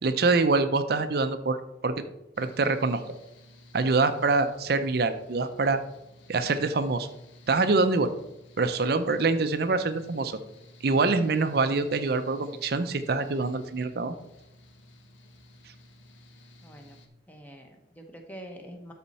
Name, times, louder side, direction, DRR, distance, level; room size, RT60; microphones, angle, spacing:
voice 1, 0.0-1.9 2.4-3.0 3.7-5.8 6.3-7.1 7.5-8.1 8.6-10.4 10.8-14.1, right 3 dB, 55° right, 9 dB, 0.5 m, -25 dB
Mechanical fan, 2.3-17.1, left 1 dB, 85° left, 1.0 m, -54 dB
voice 2, 16.6-17.0 17.3-18.9, equal, 10° left, 3 dB, 0.9 m, -45 dB
12.5 x 4.2 x 4.1 m, 0.89 s
head